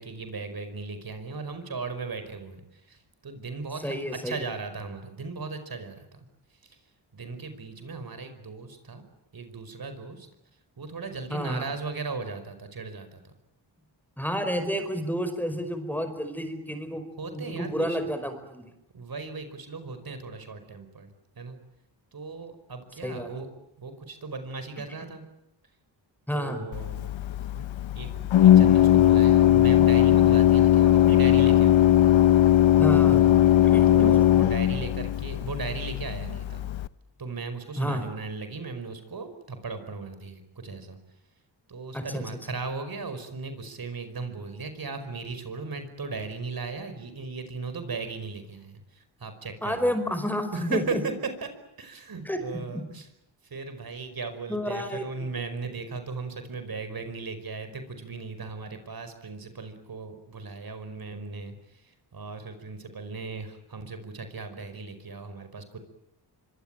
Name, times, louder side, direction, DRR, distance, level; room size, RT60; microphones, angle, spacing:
voice 1, 0.0-6.1 6.6-6.8 7.1-9.0 9.3-10.3 10.8-13.3 17.2-18.0 18.9-21.1 21.4-21.6 22.1-23.5 23.8-25.2 26.3-27.3 27.6-27.7 27.9-28.1 28.4-31.8 32.9-33.4 33.9-36.6 37.2-41.0 41.7-49.9 50.5-51.1 51.4-53.1 53.4-65.8, right 4 dB, 50° right, 9 dB, 5.1 m, -37 dB
voice 2, 3.8-4.4 11.3-11.7 14.2-18.7 23.0-23.3 26.3-26.6 32.8-33.2 33.6-34.2 37.8-38.1 41.9-42.2 49.6-51.0 52.2-52.4 52.7-52.8 54.5-55.0, equal, 5° left, 9 dB, 5.2 m, -30 dB
Organ, 26.7-36.9, left 12 dB, 80° left, 1.0 m, -19 dB
25.0 x 24.0 x 9.1 m, 0.84 s
cardioid pair, 80°, 46 cm